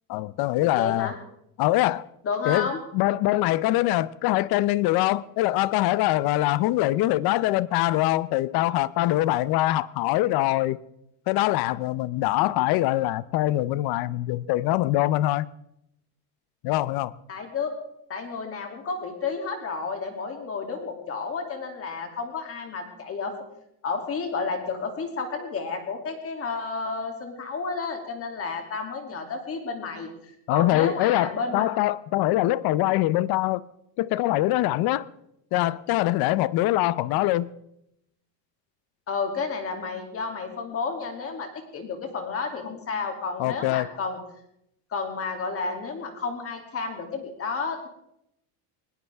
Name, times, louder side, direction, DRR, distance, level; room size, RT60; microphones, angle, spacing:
voice 1, 0.1-1.1 1.6-2.1 2.5-10.8 11.3-15.5 16.6-17.1 30.5-33.6 34.0-35.1 35.5-37.5 43.4-43.9, left 16 dB, 55° left, 0.7 m, -23 dB
voice 2, 0.7-1.1 2.2-2.8 17.3-17.7 18.1-23.3 23.8-30.1 30.5-31.7 39.1-44.2 44.9-47.9, left 4 dB, 30° left, 2.7 m, -31 dB
20.5 x 18.5 x 3.5 m
cardioid pair, 165°, 46 cm